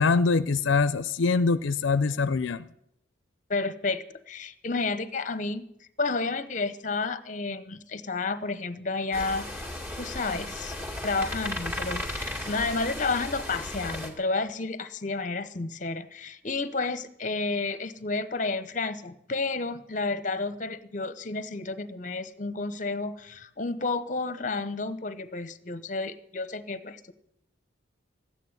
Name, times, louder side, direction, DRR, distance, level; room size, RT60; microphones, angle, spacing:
voice 1, 0.0-2.7, left 4 dB, 75° left, 14 dB, 0.5 m, -24 dB
voice 2, 3.5-5.7 6.0-9.7 10.0-10.8 11.0-27.1, left 3 dB, 40° left, 13 dB, 0.9 m, -31 dB
sound 1, 9.1-14.1, left 1 dB, 10° right, 2.1 m, -35 dB
13.5 x 9.2 x 9.7 m, 0.77 s
head